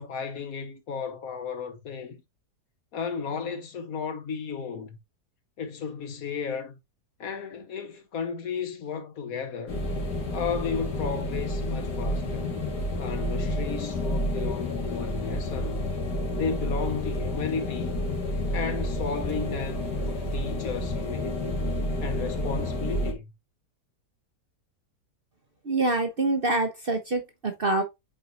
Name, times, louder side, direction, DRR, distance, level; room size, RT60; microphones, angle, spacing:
voice 1, 0.0-2.2 2.9-5.0 5.6-6.8 7.2-9.8 10.3-12.5 13.0-15.8 16.3-17.9 18.5-21.6 22.0-23.3, left 6 dB, 65° left, 1.4 m, -34 dB
sound 1, 9.7-23.1, left 1 dB, 80° left, 2.5 m, -30 dB
voice 2, 25.6-27.8, right 2 dB, 45° right, 0.8 m, -26 dB
8.0 x 4.0 x 2.9 m
omnidirectional pair, 1.7 m